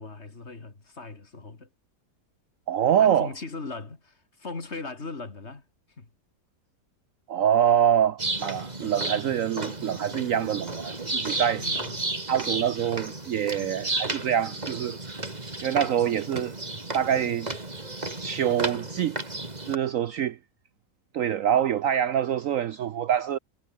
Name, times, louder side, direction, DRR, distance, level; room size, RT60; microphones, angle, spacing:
voice 1, 0.0-1.7 3.0-5.7 6.0-6.1 11.6-12.1, left 3 dB, 40° left, 2.7 m, -39 dB
voice 2, 2.7-3.3 7.3-11.6 12.3-15.0 15.6-16.5 16.9-17.5 18.2-19.2 19.7-20.4 21.1-23.4, right 9 dB, 65° right, 0.9 m, -25 dB
sound 1, 8.2-19.8, right 2 dB, 25° right, 3.0 m, -33 dB
omnidirectional pair, 1.8 m